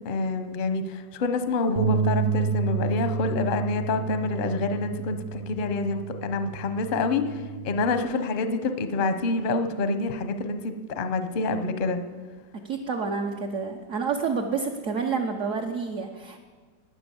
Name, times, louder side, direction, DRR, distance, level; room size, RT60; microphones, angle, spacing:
voice 1, 0.0-12.0, left 3 dB, 45° left, 8 dB, 0.7 m, -27 dB
Bass guitar, 1.8-8.0, right 6 dB, 80° right, 0.5 m, -30 dB
voice 2, 12.6-16.4, right 5 dB, 55° right, 2 dB, 1.1 m, -29 dB
13.0 x 9.6 x 6.9 m, 1.4 s
omnidirectional pair, 1.9 m